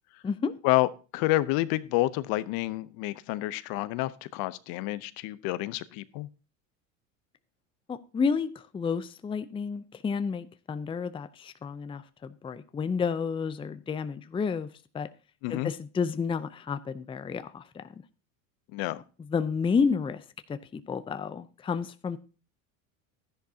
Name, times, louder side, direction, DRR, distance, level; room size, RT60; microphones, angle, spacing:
voice 1, 0.2-0.5 7.9-14.7 14.9-15.1 15.5-17.9 19.3-20.2 20.5-22.2, left 5 dB, 15° left, 0.5 m, -31 dB
voice 2, 1.1-6.3 15.4-15.7 18.7-19.0, left 18 dB, 60° left, 0.8 m, -29 dB
12.5 x 10.5 x 2.8 m
supercardioid pair, 100°, 40 cm